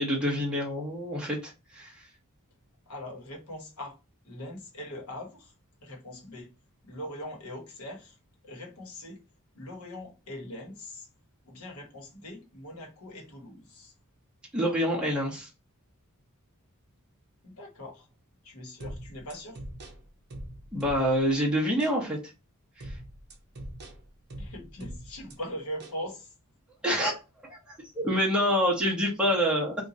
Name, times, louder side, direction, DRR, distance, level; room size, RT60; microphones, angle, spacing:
voice 1, 0.0-2.1 14.5-15.5 20.7-22.2 22.8-23.0 26.8-29.7, equal, 5° right, 1.0 m, -27 dB
voice 2, 2.9-4.0 4.2-5.5 5.8-6.5 6.8-8.2 8.4-9.2 9.5-11.1 11.4-13.9 17.4-18.1 18.4-19.6 24.4-26.3, left 1 dB, 70° left, 1.3 m, -41 dB
sound 1, 18.8-21.3 21.8-22.0 22.8-25.4 25.8-26.0, right 1 dB, 50° right, 0.8 m, -42 dB
2.9 x 2.5 x 3.8 m
head